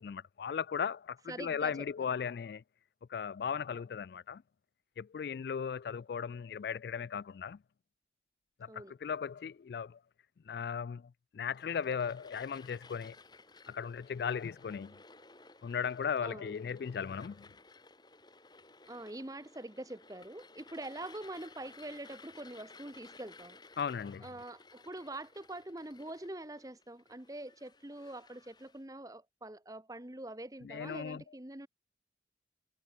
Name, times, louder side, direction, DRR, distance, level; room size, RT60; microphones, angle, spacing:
voice 1, 0.0-2.6 3.1-4.4 5.0-7.6 8.6-10.0 10.5-11.0 11.3-13.1 13.7-14.9 15.6-17.5 23.8-24.3 30.6-31.2, left 7 dB, 60° left, 0.3 m, -37 dB
voice 2, 1.3-2.1 8.7-8.9 16.2-16.5 18.9-23.6 24.2-31.7, right 1 dB, 20° right, 1.1 m, -45 dB
sound 1, 11.5-28.8, left 3 dB, 25° left, 2.9 m, -57 dB
head